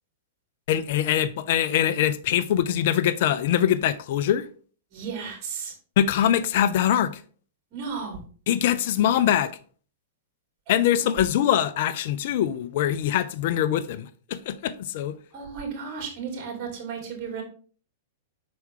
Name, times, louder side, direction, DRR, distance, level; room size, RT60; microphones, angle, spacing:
voice 1, 0.7-4.5 6.0-7.2 8.5-9.5 10.7-15.2, left 10 dB, 60° left, 0.5 m, -23 dB
voice 2, 4.9-5.7 7.7-8.2 11.0-11.2 15.3-17.4, right 6 dB, 40° right, 3.1 m, -34 dB
6.1 x 4.6 x 3.7 m
hypercardioid pair, 130°, 0 cm